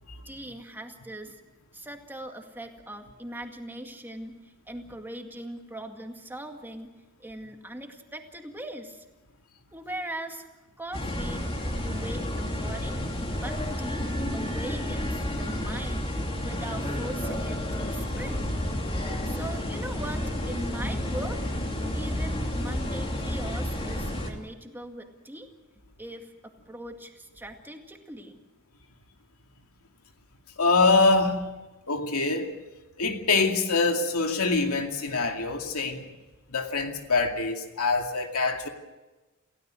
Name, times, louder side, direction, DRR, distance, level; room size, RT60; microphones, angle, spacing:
voice 1, 0.2-1.4 1.7-6.9 7.2-9.1 9.7-10.5 10.8-11.5 11.7-13.0 13.4-18.5 19.2-21.4 21.9-25.5 26.0-28.4, right 1 dB, 10° right, 2.0 m, -40 dB
sound 1, 10.9-24.3, left 1 dB, 25° left, 2.8 m, -31 dB
voice 2, 30.6-31.5 31.9-32.5 33.0-36.1 36.5-38.7, left 3 dB, 90° left, 2.5 m, -24 dB
28.5 x 16.5 x 6.3 m
head